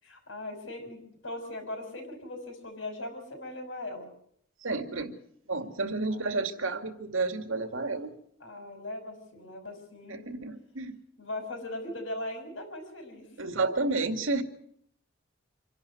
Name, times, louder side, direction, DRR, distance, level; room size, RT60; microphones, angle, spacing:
voice 1, 0.0-4.1 6.1-6.7 8.4-10.4 11.2-13.5, left 1 dB, 75° left, 5 dB, 6.0 m, -40 dB
voice 2, 4.6-5.2 5.5-8.1 10.1-11.0 13.4-14.4, right 3 dB, 85° right, 8 dB, 2.2 m, -31 dB
26.5 x 11.5 x 9.4 m, 0.69 s
head